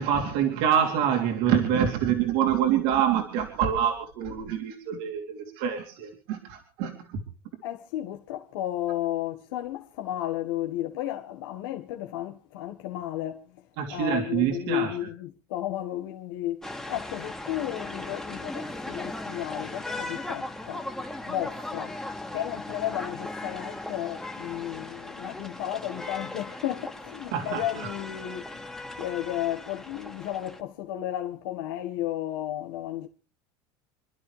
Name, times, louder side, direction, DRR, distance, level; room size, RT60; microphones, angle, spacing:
voice 1, 0.0-7.2 13.8-15.1 27.3-27.9, right 9 dB, 75° right, 3.2 m, -26 dB
voice 2, 7.6-13.4 13.9-16.6 16.9-20.9 21.3-22.0 22.3-33.1, left 13 dB, 90° left, 1.5 m, -33 dB
sound 1, 16.6-30.6, left 2 dB, 5° left, 2.0 m, -38 dB
28.0 x 12.0 x 3.3 m
supercardioid pair, 135°, 12 cm